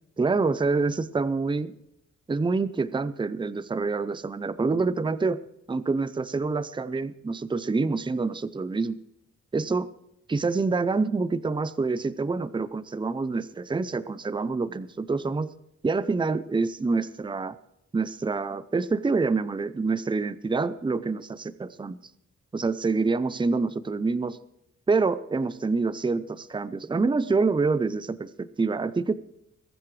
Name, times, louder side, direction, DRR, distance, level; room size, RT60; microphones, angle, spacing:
voice 1, 0.2-1.7 2.3-5.4 5.7-9.0 9.5-9.9 10.3-15.5 15.8-17.6 17.9-22.0 22.5-24.4 24.9-29.1, right 4 dB, 15° right, 15 dB, 0.5 m, -26 dB
21.5 x 13.5 x 3.2 m, 0.81 s
wide cardioid pair, 160°, 29 cm